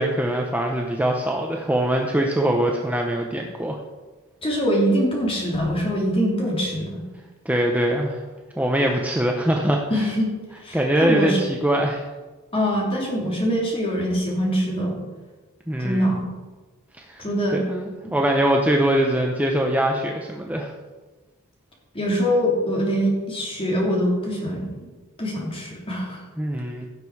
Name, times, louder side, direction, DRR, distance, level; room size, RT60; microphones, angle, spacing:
voice 1, 0.0-3.8 7.4-8.2 8.6-10.1 10.7-12.0 15.7-16.1 17.0-17.2 17.5-20.7 26.4-26.8, right 1 dB, 5° right, 1 dB, 0.8 m, -22 dB
voice 2, 4.4-7.0 9.9-10.3 10.6-11.4 12.5-15.0 15.8-16.3 17.2-17.6 18.0-18.1 21.9-24.7 25.2-26.2, equal, 25° left, -2 dB, 3.0 m, -23 dB
16.0 x 6.7 x 4.8 m, 1.3 s
head